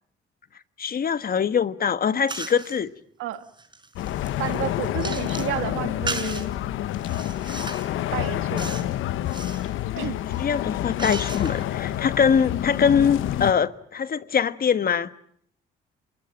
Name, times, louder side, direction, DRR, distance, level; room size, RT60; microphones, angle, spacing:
voice 1, 0.8-2.9 10.0-10.1 10.4-15.1, left 7 dB, 50° left, 1.3 m, -23 dB
sound 1, 2.3-2.8 3.3-5.6 6.1-6.5 7.0-7.9 8.6-8.9 9.2-9.7 10.2-11.7, right 3 dB, 25° right, 5.0 m, -36 dB
sound 2, 4.0-13.5, left 13 dB, 85° left, 1.1 m, -28 dB
voice 2, 4.4-6.5 8.1-8.8 10.0-10.2, right 12 dB, 90° right, 1.8 m, -31 dB
27.0 x 21.5 x 9.1 m
cardioid pair, 90°, 20 cm